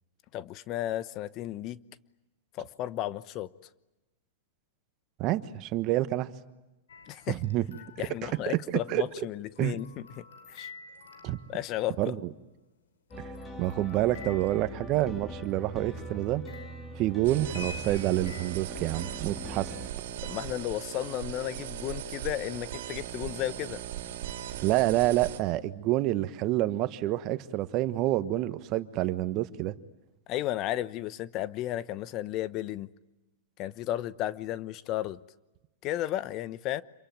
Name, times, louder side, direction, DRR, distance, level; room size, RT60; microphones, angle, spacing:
voice 1, 0.3-1.8 2.6-3.5 7.1-7.4 8.0-10.7 11.5-12.1 20.2-23.8 30.3-32.9 33.6-35.2 35.8-36.8, left 13 dB, 40° left, 16 dB, 0.9 m, -34 dB
voice 2, 5.2-6.3 7.3-7.6 8.2-8.6 8.9-9.1 9.6-9.8 11.2-11.4 12.0-12.3 13.6-16.4 17.0-19.7 24.6-29.7, right 15 dB, 40° right, 13 dB, 1.3 m, -28 dB
sound 1, 6.9-11.9 13.1-18.6, left 4 dB, 90° left, 3.3 m, -49 dB
sound 2, 13.1-19.9, right 1 dB, 15° left, 3.5 m, -42 dB
sound 3, 17.2-25.4, right 12 dB, 65° right, 2.9 m, -38 dB
27.0 x 23.5 x 9.3 m, 1.0 s
hypercardioid pair, 125°, 0 cm